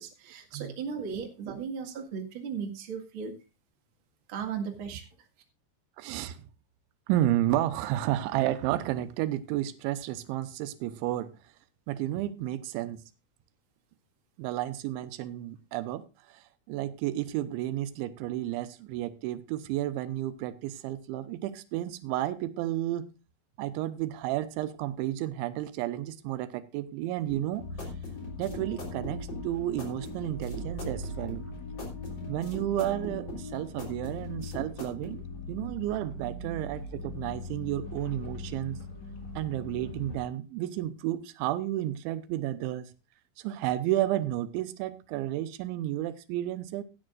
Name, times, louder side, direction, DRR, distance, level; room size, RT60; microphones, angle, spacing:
voice 1, 0.0-3.3 4.3-5.1, right 6 dB, 45° right, 1.7 m, -36 dB
voice 2, 6.0-6.4 7.1-11.3 11.9-13.0 14.4-23.1 23.6-27.6 28.4-31.4 32.3-38.8 39.4-42.9 43.4-46.8, right 13 dB, 90° right, 3.1 m, -32 dB
sound 1, 27.3-35.2, left 1 dB, 30° left, 3.5 m, -42 dB
sound 2, 27.6-40.2, left 2 dB, 55° left, 2.3 m, -40 dB
17.0 x 9.7 x 2.5 m
omnidirectional pair, 5.3 m